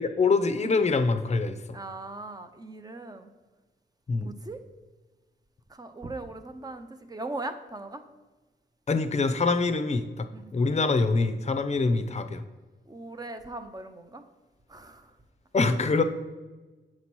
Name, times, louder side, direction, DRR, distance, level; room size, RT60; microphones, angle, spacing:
voice 1, 0.0-1.6 4.1-4.3 8.9-10.3 10.5-12.4 15.5-16.0, left 3 dB, 35° left, 8 dB, 0.6 m, -24 dB
voice 2, 1.7-3.3 4.2-4.6 5.7-8.0 10.3-10.5 12.9-14.2 14.7-15.1, right 2 dB, 20° right, 8 dB, 0.6 m, -39 dB
7.5 x 2.9 x 6.0 m, 1.2 s
cardioid pair, 90°, 20 cm